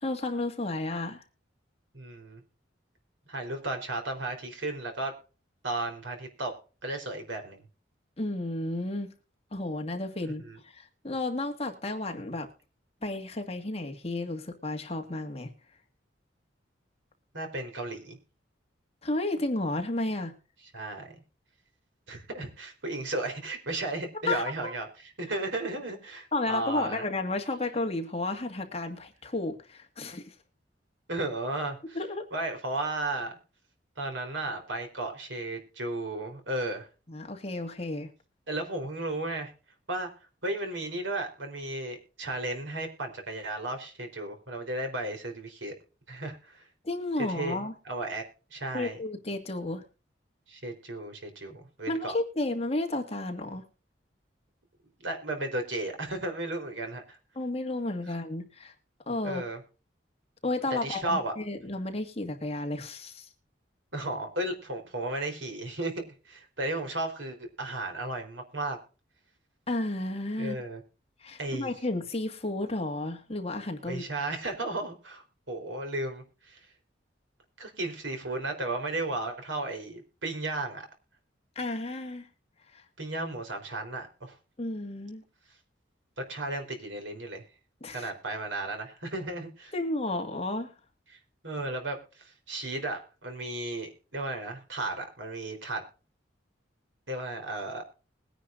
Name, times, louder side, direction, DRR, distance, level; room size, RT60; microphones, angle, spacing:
voice 1, 0.0-1.2 8.2-9.1 9.5-12.5 13.0-15.5 19.0-20.3 24.2-24.7 26.3-30.3 31.9-32.2 37.1-38.1 46.8-47.7 48.7-49.8 51.9-53.6 57.4-58.7 59.1-59.4 60.4-63.3 69.7-70.6 71.2-74.0 81.6-82.3 82.7-82.8 84.6-85.2 87.8-88.1 89.7-90.7, left 2 dB, 35° left, 4 dB, 1.8 m, -32 dB
voice 2, 1.9-2.4 3.3-5.1 5.6-6.5 6.8-7.6 10.4-10.6 17.3-18.2 20.7-21.1 22.1-24.9 25.2-27.0 31.1-32.0 32.3-33.4 34.0-36.9 38.5-39.5 39.9-40.1 40.4-45.7 46.1-46.7 47.2-48.2 48.5-49.0 50.5-52.2 55.0-57.2 59.2-59.6 60.8-61.3 63.9-65.9 66.3-68.8 70.4-70.8 71.4-71.7 73.8-76.6 77.6-80.9 83.0-84.4 86.2-87.4 87.9-89.7 91.4-95.8 97.1-97.8, right 2 dB, 75° right, 4 dB, 4.1 m, -34 dB
21.0 x 10.0 x 2.6 m, 0.35 s
head